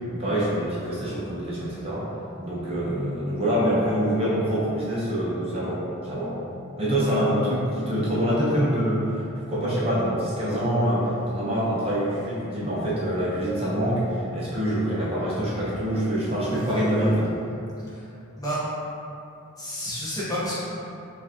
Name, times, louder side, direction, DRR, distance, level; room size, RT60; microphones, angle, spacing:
voice 1, 0.1-2.1 2.4-6.3 6.8-17.3, equal, 30° right, -8 dB, 0.7 m, -25 dB
voice 2, 17.8-18.6 19.6-20.6, equal, 15° left, -9 dB, 0.9 m, -31 dB
5.7 x 2.4 x 2.7 m, 2.7 s
head